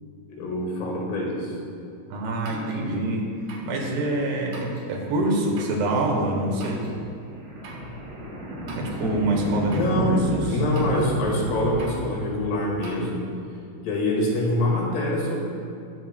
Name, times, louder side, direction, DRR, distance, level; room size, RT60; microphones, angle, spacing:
voice 1, 0.4-1.6 2.5-2.7 9.4-9.5 9.7-13.2 13.8-15.4, left 1 dB, 80° left, -3 dB, 3.9 m, -25 dB
voice 2, 2.1-3.3 3.6-6.9 8.8-10.4, right 1 dB, 80° right, -1 dB, 3.5 m, -25 dB
sound 1, 2.5-2.8 3.5-3.7 4.5-4.9 5.6-5.8 6.6-7.0 7.6-7.9 8.7-9.1 9.7-10.0 10.8-11.1 11.8-12.0 12.8-13.0, right 3 dB, 65° right, 2.8 m, -43 dB
sound 2, 6.9-12.7, equal, 40° right, 1.7 m, -32 dB
19.5 x 7.6 x 2.2 m, 2.6 s
omnidirectional pair, 4.7 m